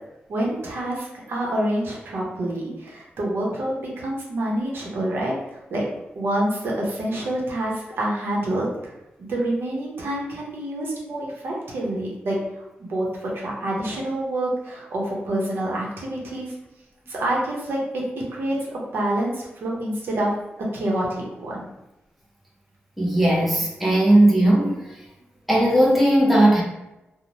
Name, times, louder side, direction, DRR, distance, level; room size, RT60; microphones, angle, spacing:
voice 1, 0.3-5.4 5.7-5.8 6.1-8.9 9.2-12.4 12.8-16.5 17.1-18.0 18.3-20.3 20.6-21.6, right 1 dB, 70° right, -3 dB, 0.7 m, -27 dB
voice 2, 23.0-24.8 25.5-26.6, right 1 dB, ahead, -4 dB, 0.5 m, -17 dB
2.7 x 2.0 x 3.0 m, 0.94 s
wide cardioid pair, 145°, 4 cm